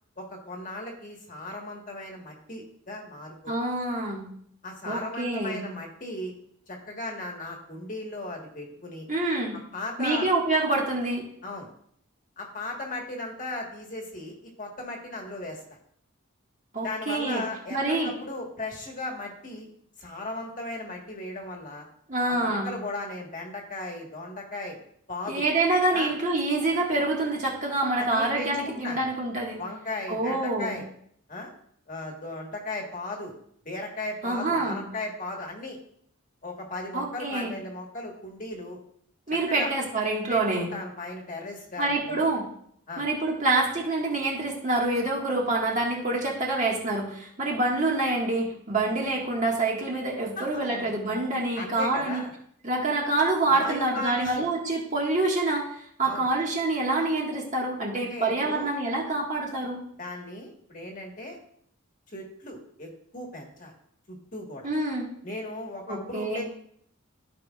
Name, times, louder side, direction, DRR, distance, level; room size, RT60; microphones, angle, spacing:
voice 1, 0.2-3.5 4.6-6.3 6.7-9.1 9.7-10.3 11.4-11.7 12.4-15.6 16.8-19.7 20.0-21.9 22.3-24.8 25.1-25.5 25.9-26.1 28.0-29.1 29.6-30.9 31.3-31.5 31.9-33.3 33.6-35.8 36.4-38.8 39.3-39.7 40.3-42.3 42.9-43.0 50.4-50.9 51.6-52.3 53.5-54.5 56.0-56.3 57.9-58.7 60.0-61.4 62.1-63.7 64.1-64.7 65.2-66.4, left 2 dB, 40° left, 0 dB, 1.5 m, -36 dB
voice 2, 3.5-4.3 4.8-5.6 9.1-9.6 10.0-11.2 16.7-17.4 17.7-18.1 22.1-22.7 25.3-29.6 30.1-30.7 34.2-34.8 36.9-37.5 39.3-40.7 41.8-42.5 43.0-52.2 52.6-59.8 64.6-65.0 65.9-66.4, right 2 dB, 35° right, -2 dB, 1.7 m, -26 dB
15.0 x 5.0 x 2.4 m, 0.66 s
head